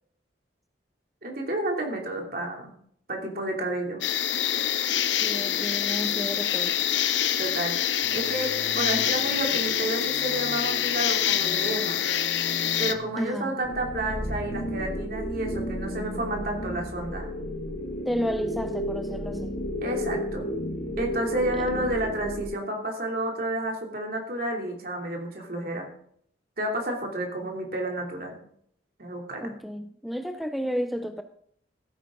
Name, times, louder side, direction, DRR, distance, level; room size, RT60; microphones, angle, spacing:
voice 1, 1.2-2.7 3.1-4.0 7.4-7.7 8.1-12.0 12.8-17.3 19.8-20.5 21.0-25.9 26.6-28.4 29.0-29.5, right 1 dB, 55° right, 0 dB, 2.9 m, -30 dB
sound 1, 4.0-12.9, left 10 dB, 85° left, 0.8 m, -26 dB
voice 2, 5.2-6.8 13.2-13.6 18.1-19.5 21.6-21.7 29.4-31.2, equal, ahead, 7 dB, 0.5 m, -32 dB
sound 2, 8.0-17.9, left 1 dB, 40° left, 1.4 m, -43 dB
sound 3, 13.6-22.5, equal, 60° left, 3.5 m, -33 dB
15.0 x 9.1 x 3.8 m, 0.65 s
head